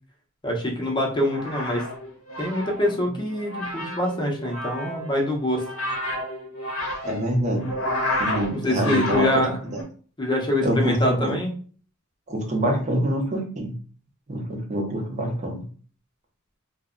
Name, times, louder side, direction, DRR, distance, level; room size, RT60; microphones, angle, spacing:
voice 1, 0.4-1.8 2.4-5.6 8.5-9.6 10.2-11.5, left 1 dB, 20° left, 0 dB, 0.6 m, -25 dB
sound 1, 1.1-9.8, left 1 dB, 65° left, 0.7 m, -31 dB
voice 2, 7.0-7.8 8.2-9.4 9.7-9.8 10.6-11.4 12.3-13.7 14.3-15.6, equal, 35° right, 2 dB, 0.6 m, -25 dB
2.6 x 2.1 x 2.4 m, 0.42 s
head